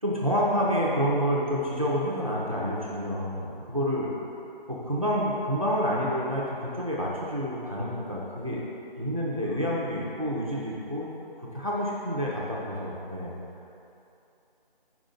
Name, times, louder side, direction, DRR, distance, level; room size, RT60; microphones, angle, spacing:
voice 1, 0.0-4.1 4.7-8.6 8.9-11.1 11.4-13.3, equal, 35° right, -5 dB, 0.6 m, -28 dB
5.1 x 4.9 x 3.7 m, 2.8 s
figure-of-eight pair, 180°, 30 cm